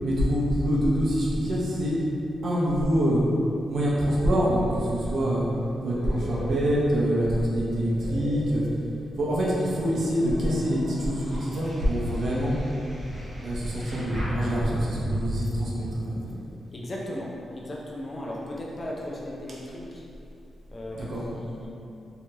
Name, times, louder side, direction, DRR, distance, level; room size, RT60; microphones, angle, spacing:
voice 1, 0.0-2.0 2.4-3.2 3.7-5.5 5.8-8.7 9.2-12.6 13.4-16.2 20.9-21.2, equal, 55° right, -5 dB, 0.6 m, -25 dB
sound 1, 5.4-9.2 9.8-15.4, equal, 10° right, 1.2 m, -36 dB
voice 2, 16.7-20.0 20.7-21.7, left 1 dB, 30° left, -4 dB, 0.4 m, -36 dB
2.8 x 2.7 x 2.2 m, 2.7 s
wide cardioid pair, 125°, 0 cm